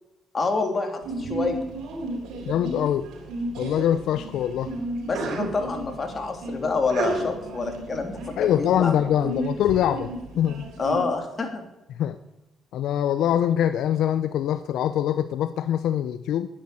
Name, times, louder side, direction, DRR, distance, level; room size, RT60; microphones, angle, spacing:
voice 1, 0.3-1.6 5.1-8.9 9.2-9.3 10.8-11.6, left 4 dB, 35° left, 4 dB, 3.3 m, -27 dB
Sneeze, 1.0-11.0, right 2 dB, 85° right, 3.9 m, -33 dB
voice 2, 2.5-3.1 3.6-4.7 8.4-10.6 11.9-12.2 12.7-16.5, left 10 dB, 80° left, 12 dB, 0.6 m, -24 dB
11.0 x 10.0 x 9.9 m, 0.97 s
cardioid pair, 90°, 0 cm